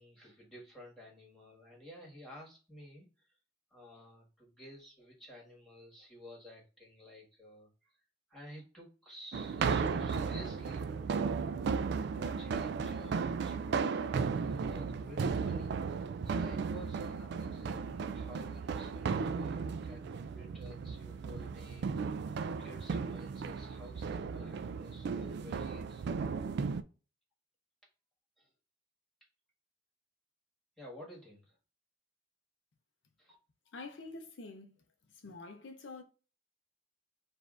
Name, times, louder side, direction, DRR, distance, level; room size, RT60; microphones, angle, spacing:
voice 1, 0.0-3.3 3.7-8.0 8.3-11.2 12.0-26.3 28.4-28.5 30.8-31.6 33.2-33.3, equal, ahead, 1.5 m, -52 dB
sound 1, 9.3-26.8, right 5 dB, 60° right, 0.3 m, -35 dB
voice 2, 33.7-34.8 35.1-36.0, left 3 dB, 80° left, 0.6 m, -47 dB
6.6 x 2.6 x 2.5 m
head